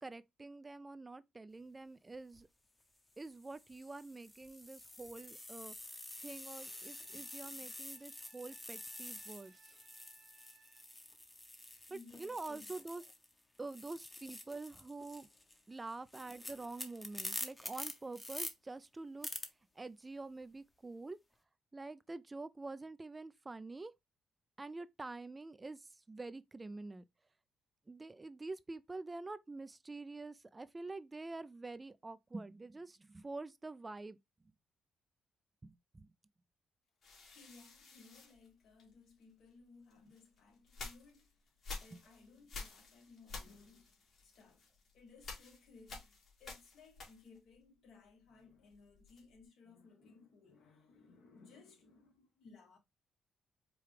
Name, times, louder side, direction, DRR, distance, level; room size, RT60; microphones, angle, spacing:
voice 1, 0.0-2.5 3.2-9.7 11.9-13.0 13.6-15.3 15.7-21.2 21.7-23.9 24.6-27.0 27.9-34.2 34.4-34.5 35.6-36.1 41.9-42.0, right 3 dB, 20° right, 0.3 m, -47 dB
sound 1, 2.2-2.4 3.2-13.3 13.6-18.5 19.2-19.5, left 1 dB, 15° left, 0.8 m, -48 dB
Bowed string instrument, 6.5-11.1, right 6 dB, 50° right, 0.8 m, -67 dB
voice 2, 11.9-12.8 37.2-46.1 46.4-52.8, left 4 dB, 75° left, 1.3 m, -61 dB
sound 2, 37.0-39.2 39.9-47.5 47.8-49.5, left 4 dB, 55° left, 1.7 m, -51 dB
4.7 x 2.3 x 3.3 m
cardioid pair, 90°, 0 cm